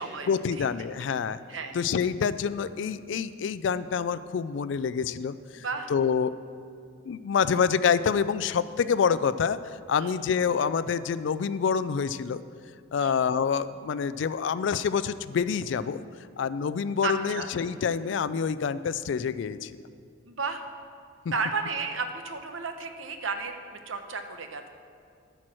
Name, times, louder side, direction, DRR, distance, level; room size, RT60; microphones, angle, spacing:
voice 1, 0.3-1.4 1.7-5.6 5.9-6.4 7.1-9.6 9.9-12.4 12.9-16.0 16.4-19.7, left 6 dB, 65° left, 14 dB, 0.3 m, -27 dB
voice 2, 5.6-5.9 10.0-10.1 13.0-13.1 17.0-17.5 20.3-20.6 21.3-24.7, right 4 dB, 80° right, 6 dB, 0.8 m, -33 dB
13.5 x 4.6 x 6.2 m, 2.3 s
head